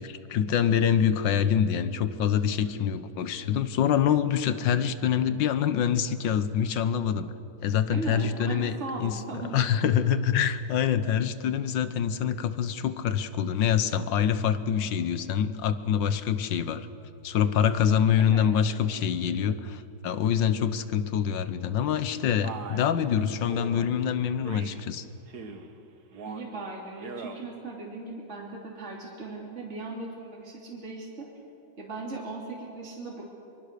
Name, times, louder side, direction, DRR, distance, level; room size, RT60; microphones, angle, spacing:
voice 1, 0.0-7.3 7.6-16.9 17.2-25.0, left 8 dB, 80° left, 12 dB, 1.7 m, -25 dB
voice 2, 7.9-9.6 18.2-18.5 26.2-31.3 31.8-33.2, right 3 dB, 35° right, -2 dB, 3.2 m, -38 dB
Male speech man speaking, 22.4-22.9 23.5-23.9 24.4-24.8 25.3-25.7 26.1-26.5 26.9-27.4, right 4 dB, 60° right, 1.9 m, -40 dB
24.5 x 24.0 x 6.8 m, 2.7 s
omnidirectional pair, 2.0 m